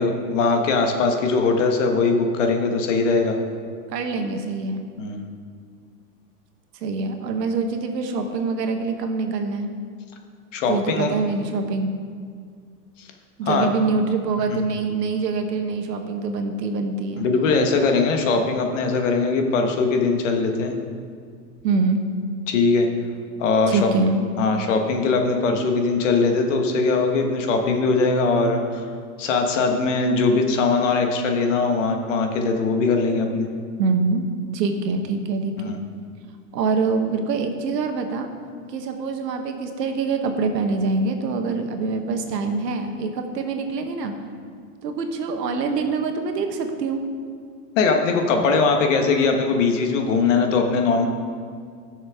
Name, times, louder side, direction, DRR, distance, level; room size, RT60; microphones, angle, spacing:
voice 1, 0.0-3.4 5.0-5.3 10.5-11.1 13.4-13.7 14.5-14.6 17.1-20.7 22.5-22.9 23.4-23.9 24.4-28.8 29.2-33.5 35.7-35.8 47.8-51.1, left 4 dB, 50° left, 4 dB, 1.3 m, -21 dB
voice 2, 3.9-4.8 6.8-9.7 10.7-11.9 13.4-17.3 21.6-22.0 23.7-24.2 33.8-34.2 34.5-35.8 36.5-38.3 38.7-44.1 44.8-47.0, right 4 dB, 85° right, 5 dB, 1.3 m, -24 dB
14.5 x 6.5 x 3.6 m, 2.1 s
supercardioid pair, 165°, 48 cm